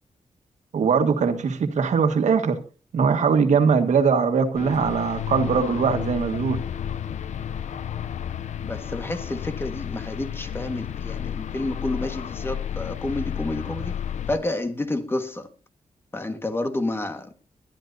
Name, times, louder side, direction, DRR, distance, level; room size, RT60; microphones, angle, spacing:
voice 1, 0.7-2.6 2.9-6.6, right 5 dB, 90° right, 1.6 m, -21 dB
sound 1, 4.5-14.4, left 9 dB, 80° left, 0.6 m, -32 dB
voice 2, 8.6-13.9 14.3-15.5 16.1-17.3, left 2 dB, 20° left, 1.6 m, -29 dB
22.5 x 12.0 x 2.7 m
wide cardioid pair, 165°, 12 cm